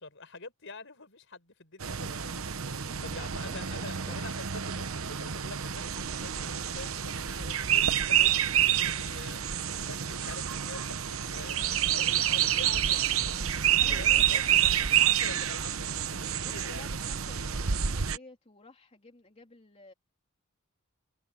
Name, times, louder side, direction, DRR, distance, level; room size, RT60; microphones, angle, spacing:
voice 1, 0.0-2.7 3.0-14.7 15.0-16.8, left 3 dB, 60° left, 6.0 m, -46 dB
sound 1, 1.8-18.2, right 10 dB, 70° right, 1.0 m, -28 dB
voice 2, 2.6-4.5 13.8-14.7 16.4-19.9, left 2 dB, 30° left, 3.3 m, -52 dB
sound 2, 11.6-13.4 14.1-15.2 15.5-17.2, right 5 dB, 35° right, 7.4 m, -54 dB
head